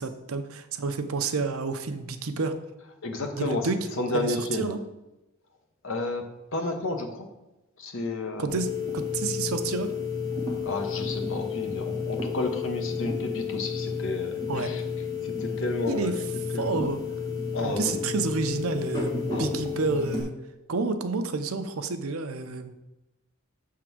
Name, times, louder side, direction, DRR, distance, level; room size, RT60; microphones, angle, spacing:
voice 1, 0.0-2.5 3.4-4.8 8.4-9.9 14.5-14.7 15.9-16.2 16.5-17.0 17.6-20.3 20.7-22.7, right 4 dB, 80° right, 8 dB, 0.6 m, -30 dB
voice 2, 3.0-3.7 4.0-4.7 5.8-7.3 7.8-8.5 10.6-14.8 15.2-16.1 16.5-16.9 17.5-18.0 19.3-19.7, left 2 dB, 65° left, 5 dB, 1.0 m, -31 dB
sound 1, 8.5-20.2, left 5 dB, 20° left, 1.6 m, -31 dB
6.8 x 3.7 x 6.1 m, 0.97 s
head